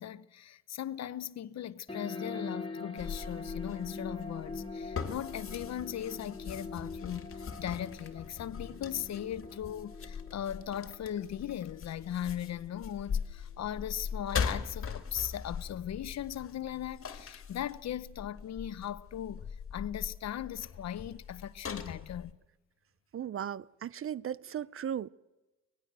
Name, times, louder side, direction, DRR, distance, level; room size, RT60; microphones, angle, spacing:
voice 1, 0.0-19.4 19.7-22.4, left 10 dB, 60° left, 1.0 m, -38 dB
sound 1, 1.9-12.9, left 3 dB, 15° left, 3.0 m, -44 dB
sound 2, 3.0-22.3, left 6 dB, 45° left, 2.2 m, -41 dB
voice 2, 23.1-25.1, right 9 dB, 45° right, 0.7 m, -36 dB
25.0 x 19.5 x 7.6 m
cardioid pair, 90°, 30 cm